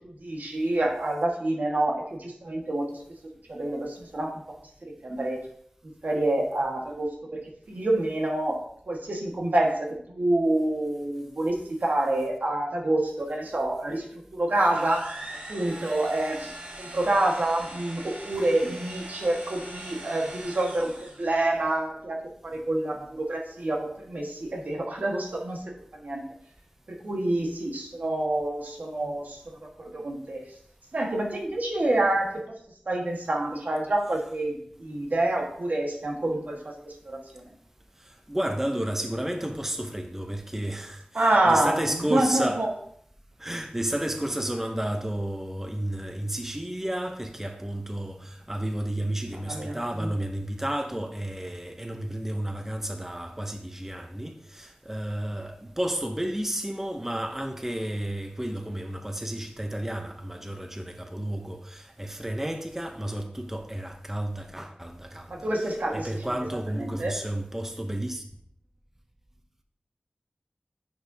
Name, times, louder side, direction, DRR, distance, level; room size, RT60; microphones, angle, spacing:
voice 1, 0.2-3.0 3.5-4.4 4.8-5.5 6.0-7.4 7.7-15.1 15.5-25.6 25.9-26.2 26.9-30.4 30.9-32.4 32.9-37.5 41.1-41.8 42.1-42.7 49.4-50.1 65.3-66.1 66.7-67.2, right 1 dB, 70° right, 1.4 m, -27 dB
sound 1, 14.7-21.4, right 1 dB, 50° right, 1.5 m, -41 dB
voice 2, 38.0-42.6 43.4-65.5 65.9-68.2, right 1 dB, 10° right, 0.6 m, -32 dB
9.9 x 5.1 x 2.7 m
wide cardioid pair, 60°, 3 cm